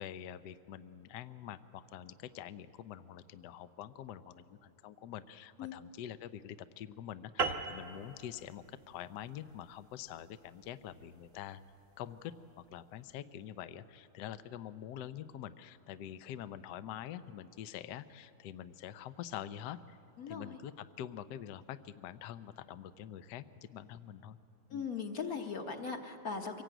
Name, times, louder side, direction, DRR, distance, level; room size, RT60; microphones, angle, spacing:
voice 1, 0.0-11.6 12.0-20.0 20.3-24.4 24.7-24.9, left 10 dB, 65° left, 13 dB, 1.1 m, -46 dB
sound 1, 7.4-12.1, right 4 dB, 45° right, 1.2 m, -40 dB
voice 2, 20.2-20.6 24.7-26.6, left 5 dB, 50° left, 4 dB, 1.5 m, -39 dB
24.5 x 17.5 x 9.1 m, 2.6 s
omnidirectional pair, 2.3 m